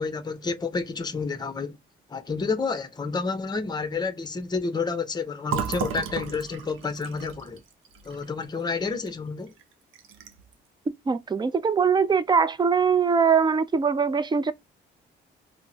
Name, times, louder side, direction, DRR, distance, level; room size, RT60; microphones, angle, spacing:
voice 1, 0.0-1.8 2.1-7.6 8.0-9.5, left 4 dB, 20° left, 0.7 m, -30 dB
Fill (with liquid), 5.5-9.1 9.5-9.6 9.9-10.5, right 7 dB, 80° right, 0.7 m, -34 dB
voice 2, 11.1-14.5, right 6 dB, 20° right, 0.4 m, -22 dB
3.6 x 2.0 x 2.7 m
cardioid pair, 90°, 20 cm